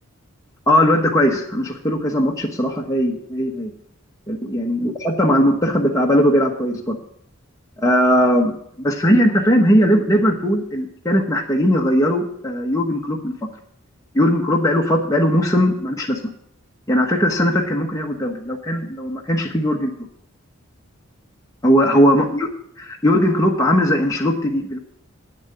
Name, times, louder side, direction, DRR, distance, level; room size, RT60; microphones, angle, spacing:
voice 1, 0.7-3.7 4.3-7.0 7.8-13.3 14.1-16.2 16.9-19.9 21.6-22.5 22.8-24.8, equal, 15° left, -1 dB, 1.1 m, -18 dB
9.5 x 7.3 x 7.8 m, 0.69 s
head